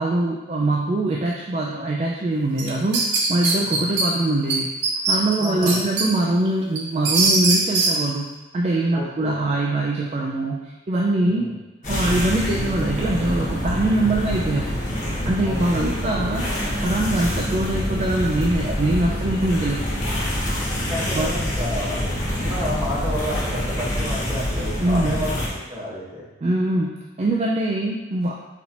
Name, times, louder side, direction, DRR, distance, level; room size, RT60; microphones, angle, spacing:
voice 1, 0.0-4.7 5.1-11.5 11.9-14.7 15.3-16.5 16.8-19.9 21.1-21.4 24.8-25.2 26.4-28.4, right 2 dB, 35° right, -2 dB, 0.4 m, -23 dB
sound 1, 2.6-4.1 4.5-4.6 4.8-6.0 6.5-7.9, right 3 dB, 75° right, 0.7 m, -20 dB
voice 2, 5.4-5.8 8.9-9.4 11.3-11.5 15.4-15.9 20.8-26.2, left 1 dB, 20° right, -8 dB, 1.3 m, -31 dB
sound 2, 11.8-25.5, equal, 45° left, 1.2 m, -26 dB
4.3 x 4.1 x 2.9 m, 1.1 s
head